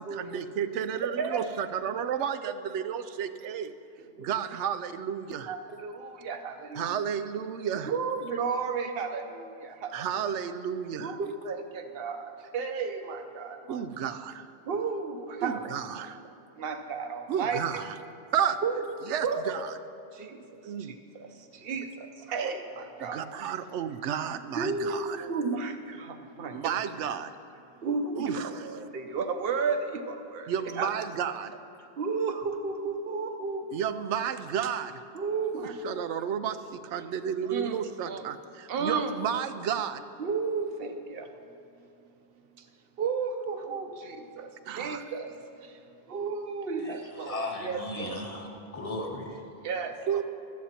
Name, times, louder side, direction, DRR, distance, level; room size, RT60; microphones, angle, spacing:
voice 1, 0.0-3.7 4.2-5.5 6.8-7.9 9.9-11.2 13.7-14.4 15.4-16.2 17.3-18.0 18.3-18.6 19.1-19.7 20.6-20.9 23.1-25.2 26.5-27.3 28.2-28.5 30.5-31.5 33.7-35.0 35.5-40.0 44.7-45.0 50.1-50.2, right 8 dB, 90° right, 11 dB, 0.9 m, -32 dB
voice 2, 5.5-6.9 7.9-10.1 11.0-13.8 14.7-15.7 16.6-17.6 18.6-18.9 19.2-19.5 20.1-23.3 24.6-26.8 27.8-31.1 32.0-33.7 35.1-36.1 36.9-37.1 37.4-37.8 38.0-38.2 38.7-39.1 40.2-41.3 42.6-42.7 43.0-45.8 46.1-48.3 49.6-50.2, right 5 dB, 60° right, 6 dB, 0.9 m, -33 dB
voice 3, 46.8-49.4, left 1 dB, 30° left, 0 dB, 1.2 m, -37 dB
16.5 x 12.5 x 2.9 m, 2.6 s
omnidirectional pair, 1.1 m